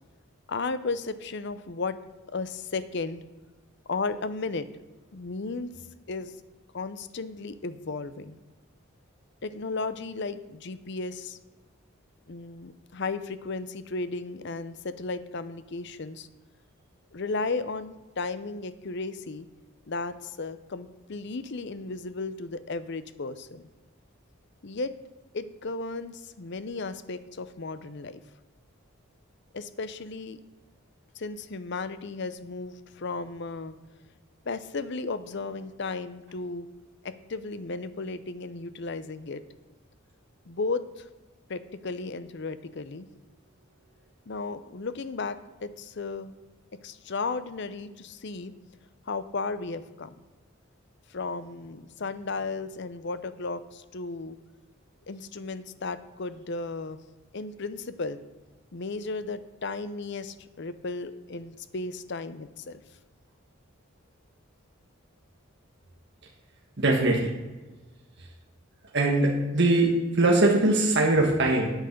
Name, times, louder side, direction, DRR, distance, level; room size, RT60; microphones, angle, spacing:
voice 1, 0.5-2.0 2.3-3.2 3.9-4.7 5.1-5.7 6.1-6.3 6.7-8.4 9.4-11.4 12.3-16.3 17.1-19.5 19.9-23.6 24.6-24.9 25.3-28.2 29.5-30.4 31.2-33.8 34.5-36.7 37.0-39.4 40.5-41.1 41.5-43.1 44.3-46.4 46.8-48.5 49.1-50.1 51.1-54.4 55.1-57.0 57.3-58.2 58.7-62.8, left 3 dB, 55° left, 13 dB, 0.6 m, -34 dB
voice 2, 66.8-67.3 68.2-68.3 68.9-71.7, right 2 dB, 55° right, 0 dB, 1.3 m, -22 dB
8.9 x 8.1 x 6.5 m, 1.2 s
head